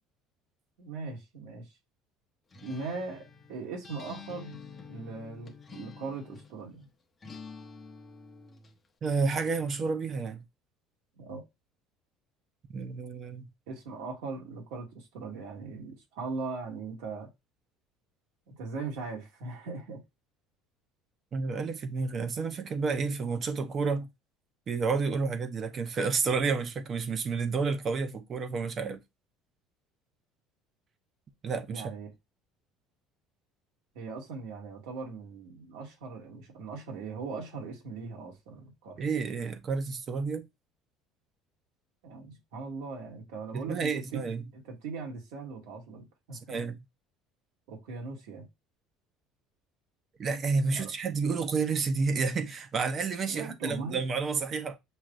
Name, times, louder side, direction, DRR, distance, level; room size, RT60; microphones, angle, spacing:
voice 1, 0.8-1.7 2.6-3.2 3.5-4.6 4.9-6.9 11.2-11.4 13.7-17.3 18.5-20.0 31.7-32.1 33.9-39.1 42.0-44.2 44.5-46.6 47.7-48.5 50.7-50.9 53.3-54.0, right 4 dB, 90° right, 2.1 m, -39 dB
Acoustic guitar, 2.5-6.6 7.2-8.8, left 5 dB, 20° left, 0.8 m, -48 dB
voice 2, 9.0-10.4 12.7-13.4 21.3-24.1 24.7-29.0 31.4-31.8 39.0-40.4 43.5-44.4 46.5-46.8 50.2-54.8, right 4 dB, 35° right, 0.7 m, -30 dB
6.3 x 2.8 x 2.5 m
cardioid pair, 130°, 0 cm